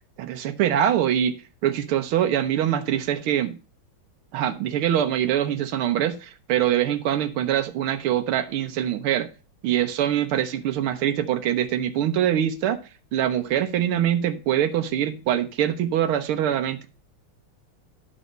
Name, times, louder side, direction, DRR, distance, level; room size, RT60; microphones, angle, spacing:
voice 1, 0.2-1.4 1.6-3.6 4.3-9.3 9.6-12.8 13.1-16.9, right 10 dB, 85° right, 8 dB, 1.8 m, -24 dB
11.5 x 4.1 x 6.6 m, 0.34 s
omnidirectional pair, 2.3 m